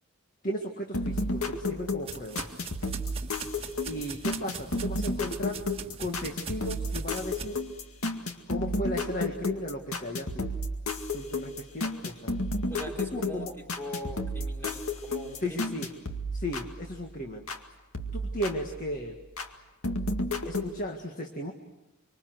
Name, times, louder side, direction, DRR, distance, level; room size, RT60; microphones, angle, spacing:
voice 1, 0.4-2.5 3.9-5.6 6.0-7.6 8.5-10.5 11.1-12.3 13.1-13.5 15.4-15.9 16.3-17.5 18.1-19.2 20.2-21.5, equal, 40° left, 3 dB, 1.8 m, -35 dB
sound 1, 0.9-17.6 17.9-19.5 19.8-20.7, left 2 dB, 80° left, 2.1 m, -33 dB
sound 2, 1.1-7.4, right 5 dB, 25° right, 1.6 m, -42 dB
voice 2, 12.7-15.7, equal, 10° left, 2 dB, 3.9 m, -41 dB
25.5 x 25.5 x 7.9 m, 1.0 s
head